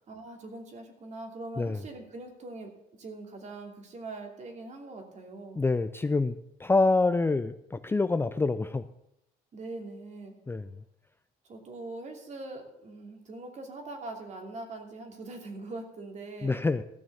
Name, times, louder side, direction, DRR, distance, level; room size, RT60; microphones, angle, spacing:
voice 1, 0.1-2.7 3.0-5.6 9.5-10.3 11.4-16.6, right 2 dB, 45° right, 3 dB, 2.8 m, -42 dB
voice 2, 5.6-8.9 10.5-10.7 16.4-16.8, left 3 dB, 15° left, 11 dB, 0.4 m, -26 dB
14.5 x 6.3 x 7.0 m, 0.82 s
cardioid pair, 110°, 17 cm